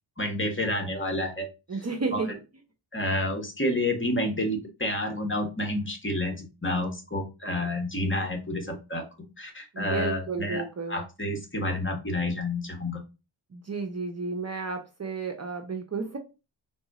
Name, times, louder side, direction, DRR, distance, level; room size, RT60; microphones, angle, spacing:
voice 1, 0.2-1.5 2.1-2.2 2.9-9.0 9.4-13.0, left 1 dB, 25° left, 3 dB, 1.5 m, -29 dB
voice 2, 1.7-2.4 9.7-11.1 13.5-16.2, right 4 dB, 30° right, 4 dB, 0.8 m, -32 dB
4.0 x 2.6 x 4.8 m, 0.28 s
cardioid pair, 70°, 49 cm